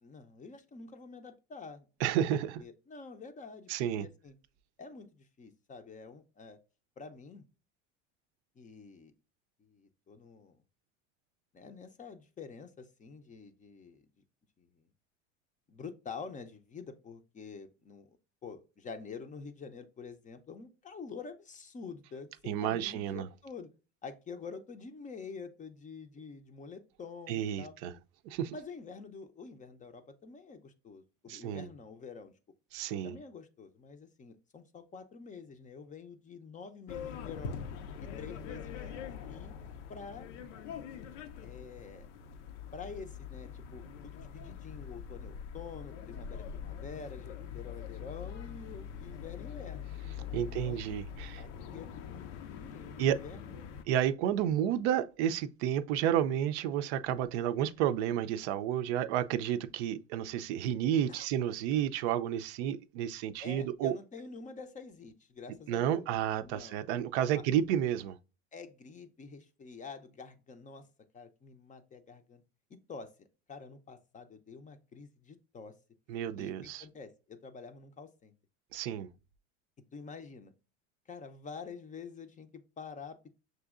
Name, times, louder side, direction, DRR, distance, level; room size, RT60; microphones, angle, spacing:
voice 1, 0.0-2.2 2.6-4.4 4.8-6.6 7.0-7.5 8.6-9.1 9.6-10.6 11.5-14.0 14.6-14.9 15.7-18.2 18.4-23.7 24.0-27.7 28.5-32.3 33.0-37.6 38.0-39.5 39.9-40.3 41.4-42.1 42.7-49.9 50.4-50.8 51.4-53.6 61.1-61.3 63.4-66.1 66.4-66.8 67.2-67.4 68.5-70.9 71.1-72.4 72.7-75.7 76.4-78.3 79.9-80.5 81.1-83.3, left 5 dB, 20° left, 0.5 m, -47 dB
voice 2, 2.0-2.6 3.7-4.1 22.5-23.3 27.3-27.9 28.3-28.5 31.3-31.7 32.7-33.2 50.3-51.4 53.0-53.2 53.9-63.9 65.7-68.2 76.1-76.8 78.7-79.1, right 10 dB, 70° right, 0.5 m, -31 dB
sound 1, 36.9-53.8, left 7 dB, 85° left, 0.6 m, -43 dB
6.1 x 2.7 x 2.4 m
supercardioid pair, 95°, 36 cm